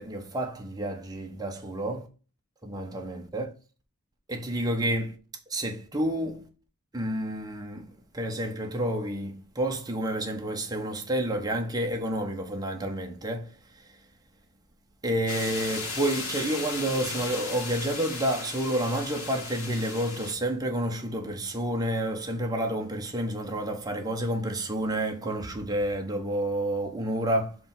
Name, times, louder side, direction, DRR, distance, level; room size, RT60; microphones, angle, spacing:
voice 1, 0.0-2.1 2.6-3.5 4.3-5.2 5.5-6.5 6.9-7.9 8.1-13.5 15.0-27.6, right 1 dB, 15° right, 1.1 m, -29 dB
sound 1, 15.3-20.3, left 3 dB, 80° left, 2.1 m, -36 dB
5.0 x 3.4 x 5.5 m
head